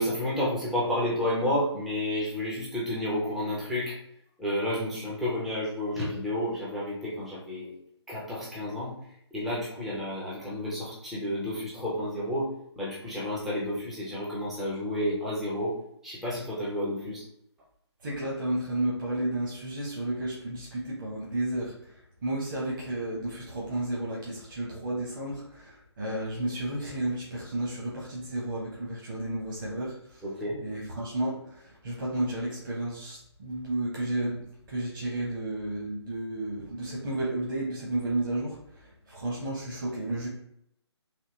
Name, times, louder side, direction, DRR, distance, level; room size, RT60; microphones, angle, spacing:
voice 1, 0.0-4.0 4.4-7.7 8.1-8.9 9.3-12.5 12.8-15.7 16.0-17.2 30.2-30.6, left 1 dB, ahead, -7 dB, 0.3 m, -30 dB
voice 2, 18.0-21.9 22.2-30.2 30.6-40.3, right 1 dB, 45° right, -4 dB, 0.9 m, -32 dB
3.5 x 2.6 x 2.7 m, 0.73 s
figure-of-eight pair, 145°, 15 cm